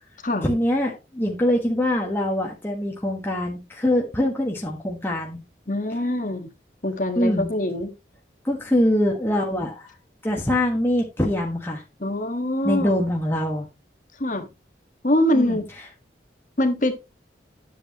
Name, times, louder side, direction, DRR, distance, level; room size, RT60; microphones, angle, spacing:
voice 1, 0.4-5.4 7.2-7.5 8.4-9.9 10.2-11.8 12.6-13.7 15.3-15.6, left 1 dB, 10° left, 1.4 m, -23 dB
voice 2, 5.7-6.5 6.8-7.9 12.0-13.0 14.2-14.5 15.0-15.7 16.6-16.9, left 1 dB, 45° left, 1.5 m, -23 dB
10.0 x 8.0 x 3.0 m
head